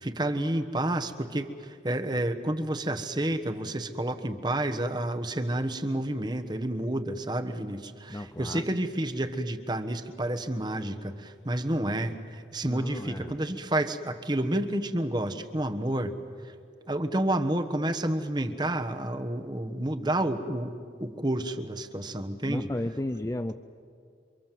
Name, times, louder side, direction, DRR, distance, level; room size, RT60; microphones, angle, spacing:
voice 1, 0.0-16.1 16.9-20.7 21.0-22.7, right 1 dB, 25° right, 8 dB, 1.2 m, -30 dB
voice 2, 8.1-8.6 12.6-13.4 22.4-23.6, left 1 dB, 15° left, 9 dB, 0.6 m, -34 dB
29.0 x 25.5 x 7.6 m, 2.4 s
head